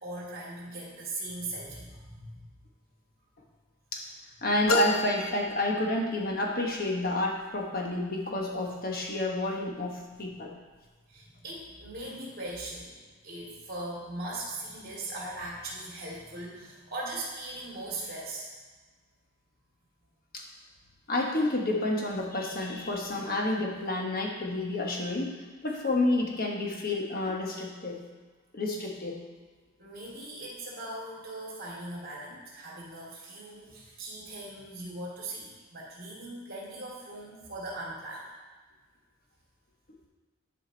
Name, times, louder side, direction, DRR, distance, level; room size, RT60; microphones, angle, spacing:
voice 1, 0.0-2.4 11.1-18.5 29.8-38.3, right 2 dB, 45° right, -4 dB, 2.5 m, -39 dB
voice 2, 4.4-10.5 20.3-20.4 21.1-28.0 28.5-29.2, left 2 dB, 45° left, 0 dB, 1.2 m, -30 dB
sound 1, 4.7-6.3, left 1 dB, 70° left, 0.7 m, -31 dB
11.0 x 5.1 x 4.0 m, 1.4 s
head